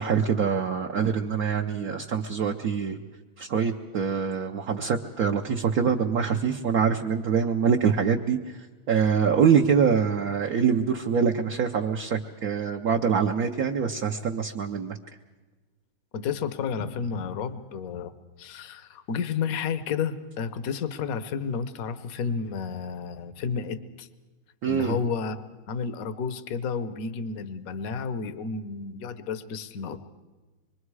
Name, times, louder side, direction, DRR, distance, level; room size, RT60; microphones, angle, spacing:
voice 1, 0.0-3.0 3.4-15.0 24.6-25.0, right 6 dB, 60° right, 2 dB, 1.0 m, -24 dB
voice 2, 16.1-18.1 18.4-24.1 24.7-30.0, left 6 dB, 55° left, 13 dB, 1.1 m, -31 dB
25.5 x 22.5 x 4.8 m, 1.2 s
omnidirectional pair, 2.4 m